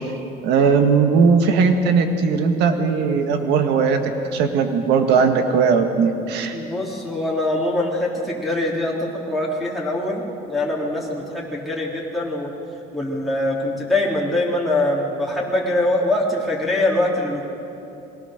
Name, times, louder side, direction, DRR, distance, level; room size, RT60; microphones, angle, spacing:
voice 1, 0.4-4.0 4.3-6.6, right 5 dB, 85° right, 6 dB, 1.7 m, -18 dB
voice 2, 6.5-12.5 12.9-17.4, left 1 dB, ahead, -6 dB, 3.6 m, -23 dB
23.5 x 18.0 x 6.7 m, 2.7 s
cardioid pair, 110°, 17 cm